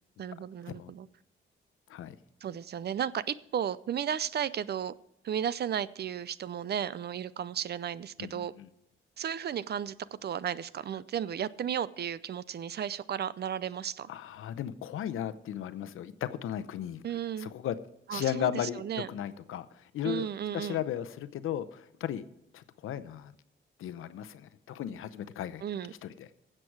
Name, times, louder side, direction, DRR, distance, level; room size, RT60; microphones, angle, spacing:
voice 1, 0.2-1.1 2.4-4.9 5.2-8.5 9.2-14.1 17.0-17.5 18.1-19.1 20.0-20.8 25.6-25.9, right 9 dB, 50° right, 0.5 m, -34 dB
voice 2, 8.2-8.7 14.1-17.0 17.4-17.7 18.1-20.3 20.5-22.2 22.5-23.3 23.8-25.6 25.9-26.3, left 10 dB, 90° left, 0.7 m, -36 dB
16.0 x 7.6 x 4.7 m
cardioid pair, 115°, 21 cm